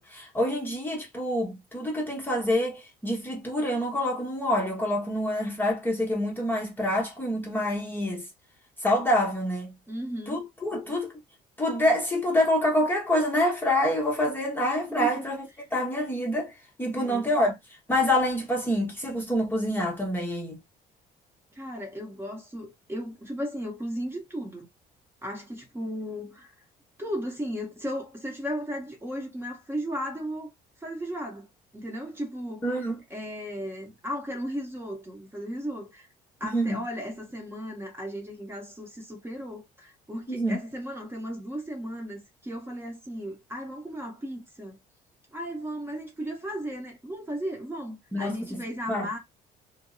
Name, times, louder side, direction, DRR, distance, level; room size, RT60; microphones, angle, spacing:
voice 1, 0.0-8.2 8.8-9.7 10.3-11.1 11.6-15.4 15.7-16.5 16.8-17.5 17.9-20.6 32.6-33.0 36.5-36.8 40.3-40.6 48.1-48.6 48.9-49.1, left 1 dB, 10° left, 0.9 m, -26 dB
voice 2, 9.9-10.4 14.9-15.2 16.9-17.3 21.5-24.7 25.2-26.5 27.0-30.5 30.8-32.7 33.1-36.1 36.4-44.8 45.3-49.2, equal, 15° right, 0.9 m, -35 dB
2.5 x 2.0 x 2.3 m
cardioid pair, 110°, 17 cm